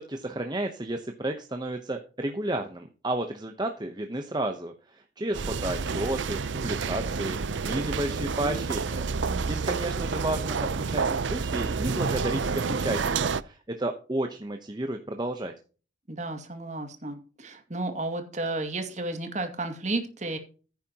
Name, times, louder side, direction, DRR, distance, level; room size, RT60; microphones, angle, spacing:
voice 1, 0.0-9.1 9.4-15.5, right 1 dB, 20° right, 5 dB, 0.9 m, -32 dB
sound 1, 5.3-13.4, right 5 dB, 75° right, 0.6 m, -29 dB
voice 2, 9.2-9.9 16.1-20.4, right 2 dB, 40° right, 6 dB, 2.2 m, -33 dB
15.0 x 9.2 x 2.9 m, 0.37 s
head